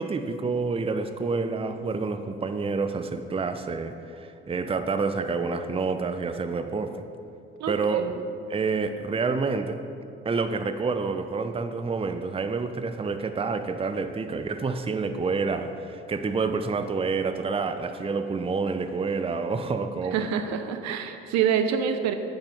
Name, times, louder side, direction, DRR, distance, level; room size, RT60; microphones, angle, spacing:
voice 1, 0.0-7.0 7.7-8.1 8.5-9.8 10.2-20.3, right 4 dB, 20° right, 8 dB, 0.6 m, -28 dB
voice 2, 7.6-8.2 20.1-22.1, right 8 dB, 60° right, 8 dB, 0.8 m, -26 dB
9.0 x 7.1 x 5.4 m, 2.6 s
figure-of-eight pair, 45°, 31 cm